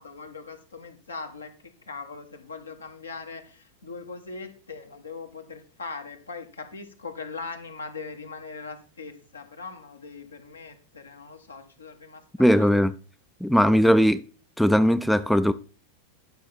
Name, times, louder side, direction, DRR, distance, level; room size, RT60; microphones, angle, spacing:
voice 1, 0.0-12.7, left 4 dB, 75° left, 1.2 m, -40 dB
voice 2, 12.4-12.9 13.4-14.2 14.6-15.5, equal, ahead, 0.4 m, -19 dB
10.0 x 5.5 x 4.2 m
figure-of-eight pair, 90°, 0 cm